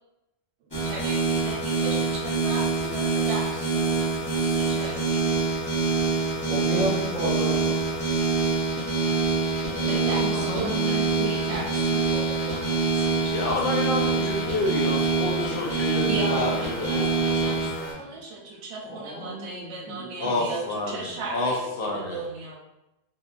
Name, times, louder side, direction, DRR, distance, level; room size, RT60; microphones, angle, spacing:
sound 1, 0.7-17.9, right 4 dB, 25° left, 0.8 m, -25 dB
voice 1, 0.8-5.4 9.9-13.6 16.0-22.6, right 3 dB, 85° right, -1 dB, 0.9 m, -37 dB
voice 2, 6.4-7.9 9.5-11.6 18.8-20.5, right 1 dB, 45° right, -8 dB, 0.9 m, -33 dB
voice 3, 13.3-17.1 17.3-17.9 20.2-22.2, left 2 dB, 60° left, 0 dB, 0.7 m, -29 dB
2.7 x 2.4 x 2.4 m, 0.91 s
omnidirectional pair, 1.1 m